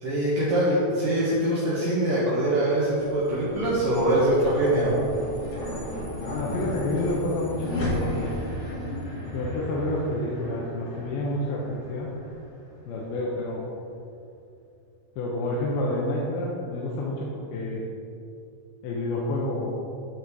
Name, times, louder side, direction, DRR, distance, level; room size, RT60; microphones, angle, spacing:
voice 1, 0.0-4.9, right 1 dB, 65° right, -8 dB, 2.8 m, -23 dB
sound 1, 2.9-13.3, left 1 dB, 55° left, 3.7 m, -35 dB
voice 2, 6.2-8.3 9.3-12.1 12.9-13.6 15.2-17.8 18.8-19.7, left 1 dB, 80° left, -5 dB, 2.8 m, -29 dB
13.0 x 4.4 x 4.8 m, 2.6 s
omnidirectional pair, 4.4 m